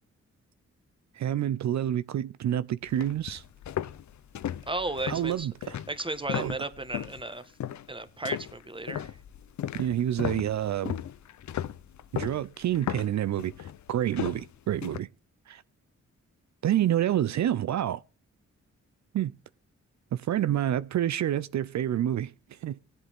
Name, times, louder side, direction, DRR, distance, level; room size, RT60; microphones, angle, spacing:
voice 1, 1.1-3.4 5.1-5.8 6.3-6.6 9.7-11.0 12.1-15.1 15.5-15.6 16.6-18.0 19.1-19.4 20.1-22.8, right 11 dB, 70° right, 0.5 m, -28 dB
sound 1, 2.8-7.2 7.6-7.9 8.3-15.0, left 10 dB, 75° left, 0.7 m, -36 dB
voice 2, 4.7-5.5 5.9-7.4 7.9-9.1, right 2 dB, 15° right, 1.4 m, -34 dB
19.0 x 8.1 x 3.5 m
cardioid pair, 75°, 29 cm